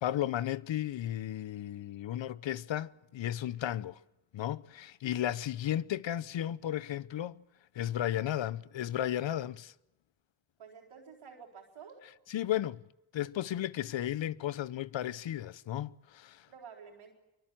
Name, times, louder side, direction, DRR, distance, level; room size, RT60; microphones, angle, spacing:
voice 1, 0.0-4.0 4.3-7.4 7.7-9.7 12.3-12.8 13.1-16.5, left 12 dB, 65° left, 0.8 m, -34 dB
voice 2, 10.6-12.0 16.5-17.1, right 6 dB, 85° right, 4.3 m, -51 dB
23.0 x 23.0 x 7.6 m
supercardioid pair, 50°, 48 cm